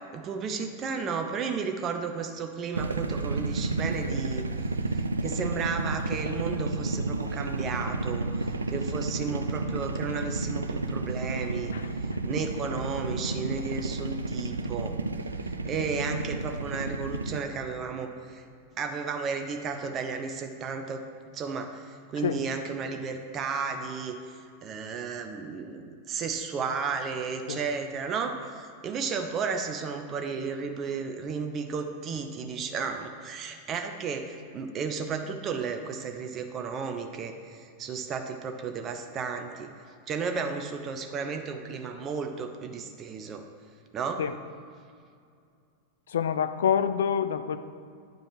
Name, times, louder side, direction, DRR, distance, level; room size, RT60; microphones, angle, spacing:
voice 1, 0.1-4.4 4.9-11.7 12.3-15.0 15.4-18.4 18.8-21.0 21.3-24.2 24.6-39.7 40.1-43.5 43.9-44.2, right 5 dB, 30° right, 6 dB, 0.6 m, -33 dB
sound 1, 2.7-17.4, right 2 dB, 75° right, 0.4 m, -31 dB
voice 2, 46.1-47.6, left 8 dB, 65° left, 11 dB, 0.4 m, -26 dB
9.1 x 5.0 x 4.7 m, 2.3 s
figure-of-eight pair, 90°, 0 cm